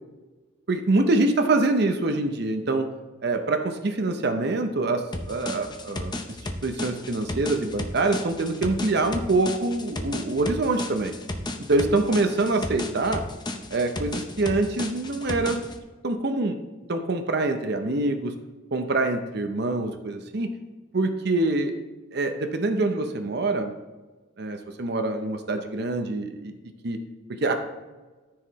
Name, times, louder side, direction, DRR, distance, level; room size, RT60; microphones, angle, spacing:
voice 1, 0.7-2.9 3.2-6.1 6.6-11.1 11.7-13.2 13.7-15.6 16.0-16.6 16.9-18.3 18.7-20.5 20.9-21.8 22.1-23.7 24.4-26.5 26.8-27.0 27.3-27.5, right 2 dB, 55° right, 6 dB, 0.7 m, -25 dB
sound 1, 5.1-15.8, left 1 dB, 20° left, 0.6 m, -34 dB
13.5 x 4.8 x 3.1 m, 1.3 s
head